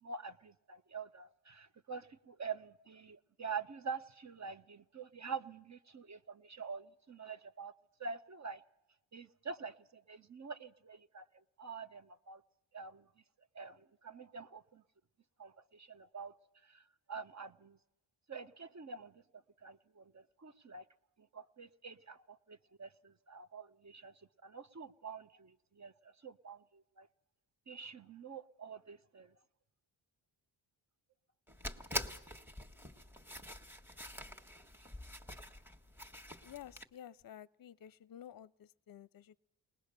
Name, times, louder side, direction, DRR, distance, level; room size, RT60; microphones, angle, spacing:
voice 1, 0.0-7.7 8.0-8.6 9.1-12.4 12.7-13.1 13.5-14.8 15.4-16.3 16.6-17.8 18.3-20.8 21.2-27.1 27.7-29.3, right 5 dB, 35° right, 0.8 m, -47 dB
sound 1, 31.5-36.9, left 1 dB, 5° right, 1.5 m, -45 dB
voice 2, 36.4-39.4, left 10 dB, 45° left, 0.6 m, -52 dB
20.5 x 20.0 x 6.7 m
cardioid pair, 65°, 49 cm